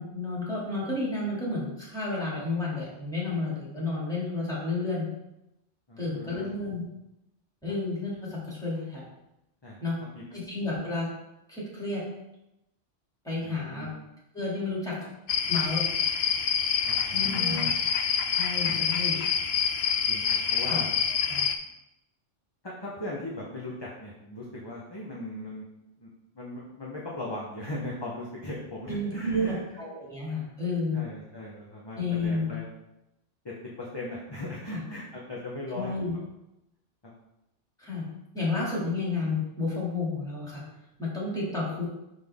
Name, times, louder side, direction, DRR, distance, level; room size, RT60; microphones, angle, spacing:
voice 1, 0.0-5.1 6.0-6.8 7.6-9.0 9.8-10.0 10.3-11.1 11.5-12.0 13.2-13.9 14.3-15.1 15.5-15.8 17.1-17.6 18.3-19.2 20.6-20.8 21.3-21.5 28.9-31.0 31.9-32.5 34.7-34.8 35.7-36.1 37.8-38.0 38.3-40.6 41.0-41.9, left 2 dB, 5° left, -7 dB, 2.6 m, -31 dB
voice 2, 5.9-6.5 9.6-9.8 10.1-10.4 13.4-13.9 16.8-17.7 18.7-19.0 20.1-20.9 22.6-25.7 26.0-26.1 26.3-29.6 30.9-32.7 33.4-35.9 37.0-37.1, left 1 dB, 25° left, -4 dB, 1.0 m, -38 dB
sound 1, 15.3-21.6, left 7 dB, 65° left, 0.8 m, -26 dB
5.9 x 5.9 x 3.6 m, 0.88 s
omnidirectional pair, 1.2 m